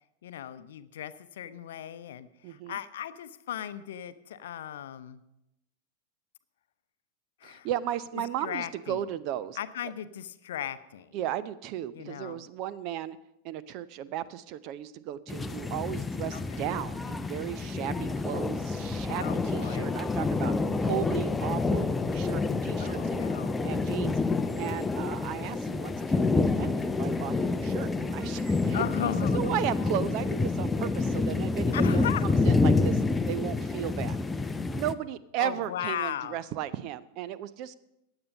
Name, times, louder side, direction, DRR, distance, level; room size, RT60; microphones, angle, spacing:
voice 1, 0.2-5.2 7.4-7.7 8.4-9.0 9.6-11.2 11.9-12.5 16.3-16.6 19.1-19.9 22.8-23.6 28.7-29.6 31.7-32.2 35.4-36.4, left 10 dB, 60° left, 12 dB, 0.7 m, -37 dB
voice 2, 2.4-2.8 7.4-9.6 11.1-13.2 13.4-20.5 20.8-23.2 23.6-24.2 24.6-34.2 34.7-37.7, right 11 dB, 40° right, 17 dB, 0.6 m, -35 dB
sound 1, 15.3-34.9, left 3 dB, 10° left, 0.6 m, -28 dB
15.5 x 9.8 x 5.4 m, 0.87 s
figure-of-eight pair, 90°, 0 cm